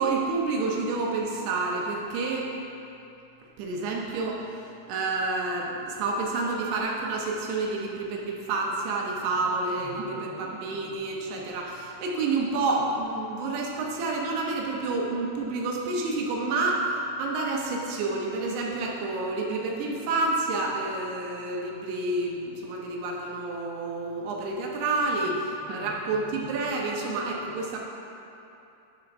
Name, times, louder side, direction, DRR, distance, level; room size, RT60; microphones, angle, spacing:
voice 1, 0.0-2.5 3.6-4.4 4.9-25.3 25.7-27.8, right 3 dB, 80° right, -1 dB, 2.6 m, -29 dB
voice 2, 9.9-10.4 25.2-26.0 27.5-27.6, left 5 dB, 90° left, -4 dB, 2.1 m, -45 dB
8.2 x 4.3 x 5.3 m, 2.8 s
omnidirectional pair, 4.9 m